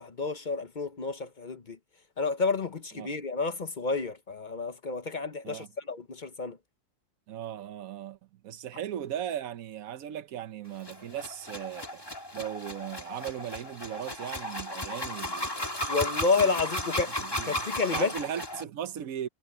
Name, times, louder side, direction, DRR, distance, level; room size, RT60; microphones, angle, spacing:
voice 1, 0.0-1.8 2.2-6.6 15.9-17.1 17.4-18.1, left 4 dB, 40° left, 0.9 m, -30 dB
voice 2, 7.3-8.2 8.4-12.0 12.3-15.7 16.4-16.6 17.2-17.7 17.9-19.3, right 10 dB, 85° right, 1.2 m, -37 dB
sound 1, 10.8-18.6, left 1 dB, 15° left, 2.1 m, -35 dB
omnidirectional pair, 1.4 m